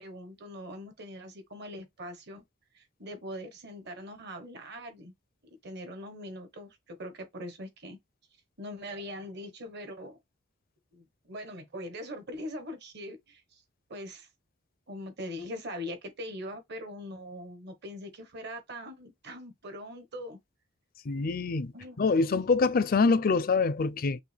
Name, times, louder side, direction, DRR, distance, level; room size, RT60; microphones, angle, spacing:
voice 1, 0.0-2.4 2.7-5.1 5.6-8.0 8.6-10.2 10.9-13.6 13.9-14.3 14.9-20.4 21.7-22.1, equal, 55° right, 1.3 m, -42 dB
voice 2, 21.1-21.7 22.0-24.2, left 4 dB, 45° left, 0.4 m, -25 dB
5.8 x 2.2 x 3.4 m
head